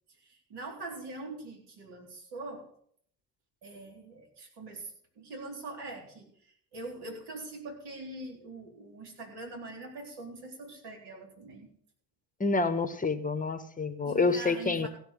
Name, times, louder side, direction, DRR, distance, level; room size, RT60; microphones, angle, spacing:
voice 1, 0.2-2.7 3.6-4.9 5.2-6.3 6.7-11.7 14.1-14.9, right 2 dB, 55° right, 0 dB, 4.0 m, -43 dB
voice 2, 12.4-14.9, left 3 dB, 15° left, 12 dB, 1.3 m, -28 dB
16.0 x 6.8 x 6.6 m, 0.63 s
hypercardioid pair, 55°, 48 cm